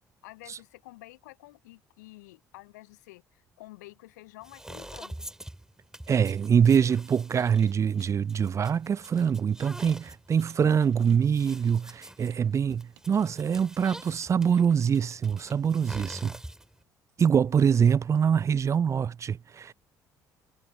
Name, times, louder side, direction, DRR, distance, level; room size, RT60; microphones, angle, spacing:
voice 1, 0.2-5.3 17.5-17.7, left 20 dB, 75° left, 0.6 m, -50 dB
sound 1, 4.4-16.8, right 1 dB, 5° right, 2.8 m, -46 dB
voice 2, 6.1-16.4 17.2-19.7, right 7 dB, 30° right, 0.4 m, -24 dB
sound 2, 6.8-6.9 7.4-7.5 8.0-8.1 8.6-8.8 9.3-9.4 9.9-10.0 10.5-10.6 11.1-11.2 11.7-11.8 12.3-12.4 13.0-13.1 13.6-13.7 14.2-14.3 14.9-15.0 15.5-15.6 16.2-16.3, right 23 dB, 65° right, 1.5 m, -59 dB
figure-of-eight pair, 50°, 9 cm